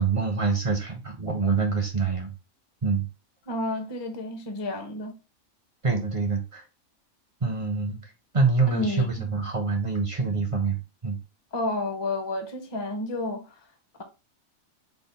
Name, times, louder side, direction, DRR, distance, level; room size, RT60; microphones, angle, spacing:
voice 1, 0.0-2.3 2.8-3.0 5.8-6.6 7.4-10.8 11.0-11.2, right 4 dB, 45° right, 0.4 m, -25 dB
voice 2, 3.5-5.2 8.7-9.1 11.5-13.6, left 1 dB, 35° left, 0.4 m, -30 dB
4.6 x 2.0 x 3.9 m
omnidirectional pair, 1.4 m